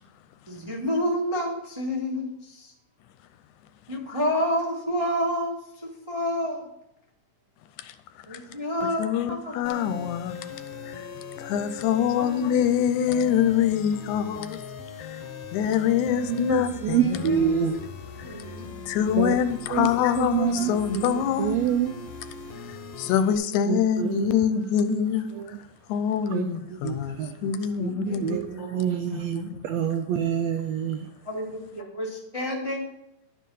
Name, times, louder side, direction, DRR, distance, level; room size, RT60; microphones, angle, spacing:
voice 1, 0.5-2.7 3.9-6.7 8.3-9.5 11.7-11.8 12.1-12.4 16.5-17.7 18.2-18.7 19.7-19.8 27.9-28.9 31.2-32.9, equal, 30° right, 0.5 m, -30 dB
voice 2, 9.0-10.4 10.9-11.0 11.4-14.6 15.0-15.2 15.5-17.4 18.9-21.6 22.7-25.3 25.9-28.4 29.1-29.6, left 9 dB, 85° left, 2.0 m, -25 dB
sound 1, 9.6-23.4, left 6 dB, 70° left, 1.6 m, -40 dB
voice 3, 16.1-17.8 19.2-19.4 19.7-19.9 20.2-21.9 23.6-24.3 24.9-25.0 25.3-25.6 26.3-27.5 27.8-31.1, right 9 dB, 85° right, 1.5 m, -27 dB
11.5 x 4.6 x 5.4 m
omnidirectional pair, 3.5 m